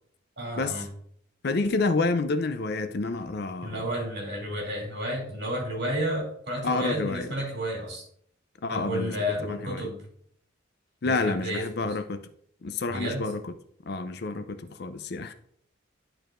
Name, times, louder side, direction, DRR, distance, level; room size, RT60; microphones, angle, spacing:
voice 1, 0.4-0.9 3.6-8.0 8.7-10.0 11.0-12.0 12.9-13.3, equal, 60° right, 2.8 m, -31 dB
voice 2, 1.4-3.8 6.6-7.3 8.6-9.1 9.4-9.9 11.0-12.2 12.6-13.5 13.9-15.3, left 3 dB, 55° left, 0.5 m, -29 dB
10.5 x 4.7 x 2.5 m
head